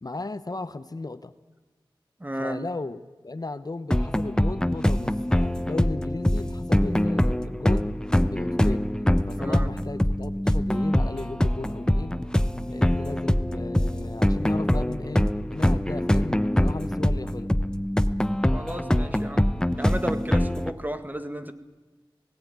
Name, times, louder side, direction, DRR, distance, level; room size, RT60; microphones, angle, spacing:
voice 1, 0.0-1.3 2.4-7.9 8.3-8.9 9.3-12.2 12.7-17.5, left 2 dB, 45° left, 12 dB, 0.9 m, -35 dB
voice 2, 2.2-2.6 9.4-9.7 18.5-19.5 19.8-21.5, right 1 dB, 20° right, 9 dB, 1.8 m, -33 dB
sound 1, 3.9-20.7, left 1 dB, 10° left, 0.9 m, -24 dB
17.5 x 16.5 x 9.4 m, 1.3 s
cardioid pair, 40°, 9 cm